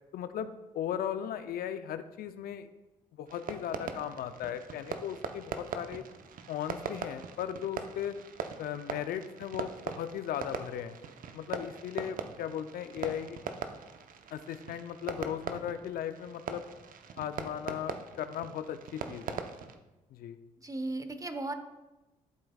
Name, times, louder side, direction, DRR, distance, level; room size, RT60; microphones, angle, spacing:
voice 1, 0.1-0.5 0.7-2.7 3.2-6.0 6.5-8.2 8.6-11.0 11.3-13.4 14.3-16.6 17.2-19.4 20.1-20.4, left 9 dB, 65° left, 11 dB, 0.5 m, -37 dB
Fireworks, 3.3-19.8, right 6 dB, 55° right, 0.8 m, -41 dB
voice 2, 20.6-21.5, right 2 dB, 20° right, 8 dB, 1.1 m, -36 dB
13.0 x 7.8 x 2.3 m, 1.0 s
hypercardioid pair, 45°, 17 cm